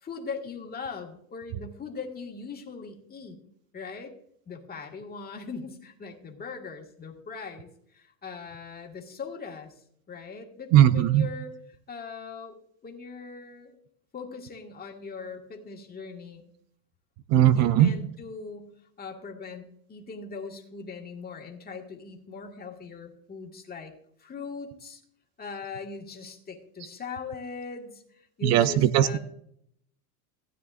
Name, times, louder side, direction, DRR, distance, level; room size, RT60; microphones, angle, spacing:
voice 1, 0.0-3.4 3.7-4.1 4.5-9.7 10.1-11.5 11.9-12.6 12.8-13.8 14.1-16.4 17.5-18.7 19.0-19.6 19.9-23.9 24.2-25.0 25.4-29.2, left 5 dB, 20° left, 2 dB, 1.8 m, -40 dB
voice 2, 10.7-11.3 17.3-17.9 28.4-29.2, right 11 dB, 35° right, 14 dB, 0.4 m, -19 dB
16.0 x 9.5 x 2.5 m, 0.68 s
supercardioid pair, 140°, 49 cm